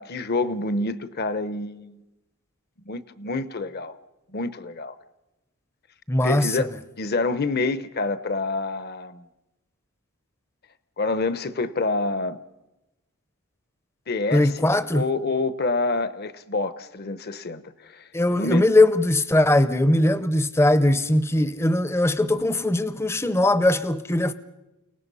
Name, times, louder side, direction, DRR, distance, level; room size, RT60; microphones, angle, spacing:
voice 1, 0.0-2.0 2.9-4.0 4.3-5.0 6.2-6.7 7.0-9.2 11.0-12.4 14.1-14.5 14.9-18.0 18.3-18.6, left 3 dB, 45° left, 0.9 m, -27 dB
voice 2, 6.1-6.7 14.3-15.1 18.1-24.3, left 1 dB, 10° left, 0.6 m, -20 dB
29.5 x 18.5 x 5.5 m
head